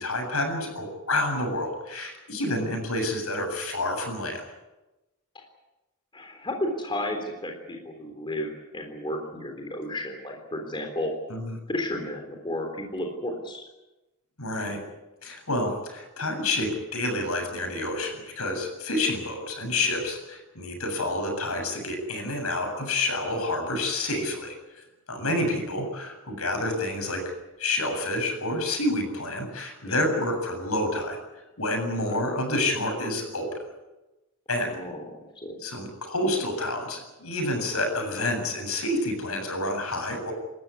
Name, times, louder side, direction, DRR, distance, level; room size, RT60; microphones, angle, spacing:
voice 1, 0.0-4.4 11.3-11.5 14.4-14.8 15.2-24.6 25.1-27.2 27.6-31.2 31.6-33.6 34.5-34.7 35.6-40.3, left 1 dB, 75° left, 4 dB, 7.6 m, -28 dB
voice 2, 6.1-11.1 11.7-13.7 29.8-30.1 32.1-32.2 34.6-35.0 35.4-35.6, left 1 dB, 20° left, 3 dB, 3.6 m, -33 dB
28.5 x 14.0 x 9.7 m, 1.0 s
head